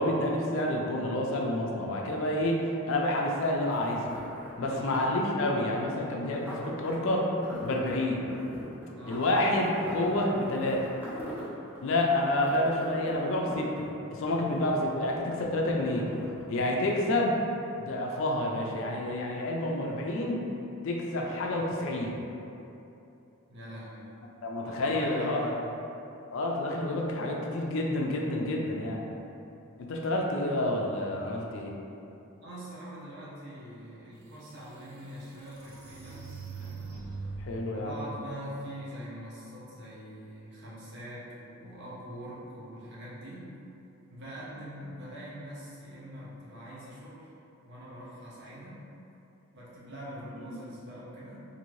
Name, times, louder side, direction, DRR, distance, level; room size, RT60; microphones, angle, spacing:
voice 1, 0.0-2.6 2.9-4.0 4.6-7.3 7.6-8.2 9.1-10.9 11.8-13.8 14.1-16.1 16.5-17.3 17.8-20.4 20.8-22.2 24.4-25.5 26.3-29.0 29.9-31.7 37.4-38.1 50.4-50.6, left 1 dB, 60° left, -1 dB, 0.4 m, -29 dB
sound 1, 3.2-16.9 17.3-17.4, equal, 10° right, 0.4 m, -44 dB
voice 2, 4.6-5.0 8.9-9.3 14.4-14.7 23.5-24.1 24.6-25.7 32.4-36.8 37.7-43.5 44.1-47.3 47.6-48.8 49.5-51.4, equal, 50° right, -8 dB, 0.8 m, -43 dB
sound 2, 33.9-34.0 34.6-37.7, right 4 dB, 80° right, 0.5 m, -42 dB
2.6 x 2.6 x 3.0 m, 2.8 s
head